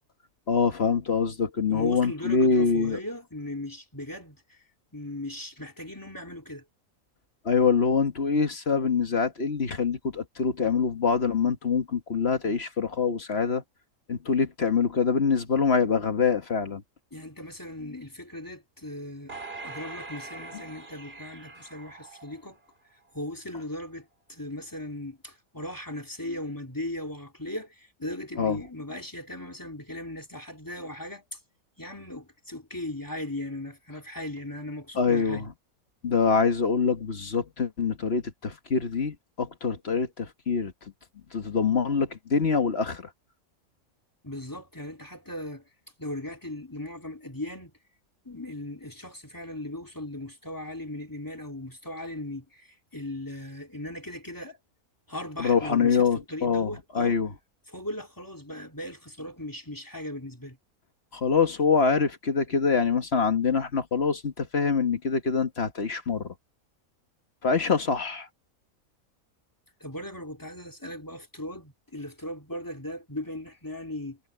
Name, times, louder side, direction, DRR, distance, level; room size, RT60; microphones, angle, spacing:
voice 1, 0.5-3.0 7.4-13.6 14.1-16.8 28.4-28.6 35.0-35.5 36.0-40.7 41.3-43.1 55.4-57.3 61.1-66.3 67.4-68.3, left 5 dB, 45° left, 1.6 m, -25 dB
voice 2, 1.7-4.6 4.9-6.6 17.1-19.3 19.6-22.6 23.1-31.4 31.8-35.5 44.2-45.7 46.0-47.7 48.2-54.6 55.1-57.2 57.7-60.6 69.8-74.2, left 1 dB, 15° left, 2.8 m, -38 dB
sound 1, 19.3-22.7 23.2-23.3, right 3 dB, 45° right, 3.3 m, -42 dB
omnidirectional pair, 1.5 m